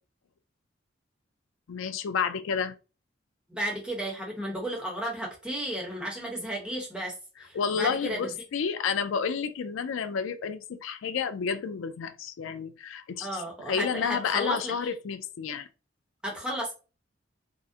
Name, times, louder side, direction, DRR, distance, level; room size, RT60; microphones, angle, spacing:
voice 1, 1.7-2.7 7.5-8.3 8.5-15.7, left 6 dB, 90° left, 0.4 m, -30 dB
voice 2, 3.5-8.3 13.2-14.7 16.2-16.7, right 1 dB, 5° right, 0.9 m, -33 dB
3.6 x 2.1 x 2.7 m
head